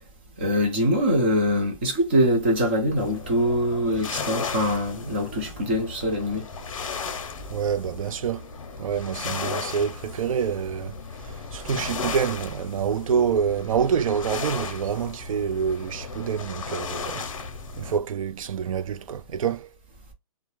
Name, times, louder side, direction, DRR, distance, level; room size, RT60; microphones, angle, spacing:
voice 1, 0.4-6.5, equal, 20° right, 0.5 m, -23 dB
sound 1, 3.0-18.0, left 5 dB, 70° left, 0.6 m, -35 dB
voice 2, 7.5-8.5 8.8-10.9 11.2-17.2 17.8-19.7, right 7 dB, 75° right, 0.4 m, -27 dB
2.3 x 2.0 x 3.0 m
hypercardioid pair, 180°, 18 cm